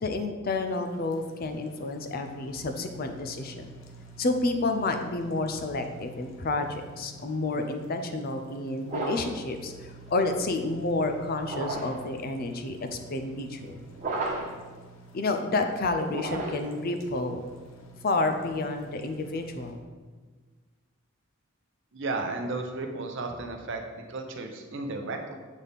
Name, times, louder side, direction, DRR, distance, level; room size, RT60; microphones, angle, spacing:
voice 1, 0.0-3.7 4.2-13.8 15.1-17.4 18.0-19.8, left 2 dB, 45° left, 6 dB, 0.5 m, -30 dB
sound 1, 0.7-19.7, right 3 dB, 70° left, 0.8 m, -50 dB
sound 2, 8.8-9.4 11.4-12.0 14.0-14.6 16.1-16.8, right 2 dB, 35° right, 1.1 m, -33 dB
voice 2, 21.9-23.8 24.1-25.4, right 3 dB, 60° right, 4 dB, 0.7 m, -33 dB
7.2 x 4.1 x 3.5 m, 1.4 s
head